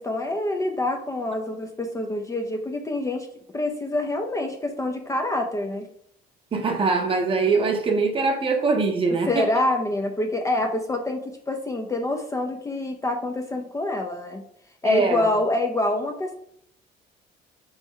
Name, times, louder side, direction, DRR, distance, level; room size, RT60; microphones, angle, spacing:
voice 1, 0.0-3.3 3.5-5.9 9.3-14.4 14.8-16.3, left 2 dB, 20° left, 4 dB, 0.4 m, -26 dB
voice 2, 6.5-9.5 14.8-15.3, right 4 dB, 30° right, 3 dB, 0.8 m, -22 dB
4.1 x 3.1 x 3.7 m, 0.69 s
cardioid pair, 110°, 17 cm